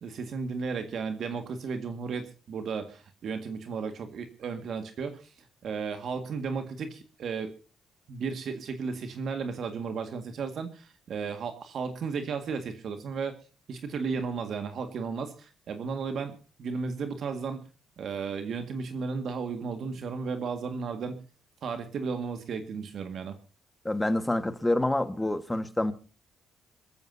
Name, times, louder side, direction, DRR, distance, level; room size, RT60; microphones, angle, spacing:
voice 1, 0.0-5.3 5.6-7.5 8.1-13.3 13.7-17.7 18.0-21.2 21.6-23.4, right 5 dB, 60° right, 1.9 m, -34 dB
voice 2, 23.8-25.9, left 1 dB, 10° left, 1.5 m, -27 dB
27.0 x 14.0 x 2.7 m
cardioid pair, 90°, 0 cm